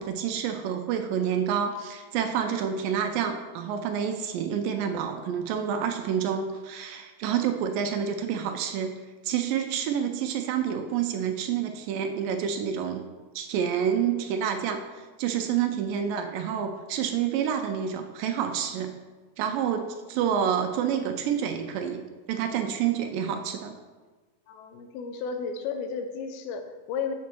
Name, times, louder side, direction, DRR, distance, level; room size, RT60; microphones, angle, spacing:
voice 1, 0.0-8.9 9.2-13.0 13.4-14.8 15.2-18.9 19.4-22.0 22.3-23.7, right 8 dB, 80° right, 5 dB, 2.1 m, -28 dB
voice 2, 24.5-27.2, left 5 dB, 85° left, 6 dB, 2.6 m, -33 dB
7.2 x 6.9 x 4.4 m, 1.3 s
omnidirectional pair, 4.2 m